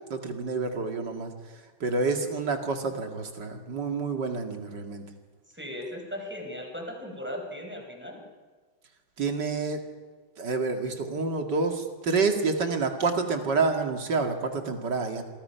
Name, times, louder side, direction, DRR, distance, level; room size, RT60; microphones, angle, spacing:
voice 1, 0.1-1.3 1.8-5.0 9.2-9.8 10.4-15.2, right 4 dB, 60° right, 4 dB, 2.8 m, -28 dB
voice 2, 5.5-8.2, left 1 dB, 5° right, 1 dB, 4.6 m, -37 dB
27.5 x 23.5 x 5.8 m, 1.4 s
omnidirectional pair, 2.2 m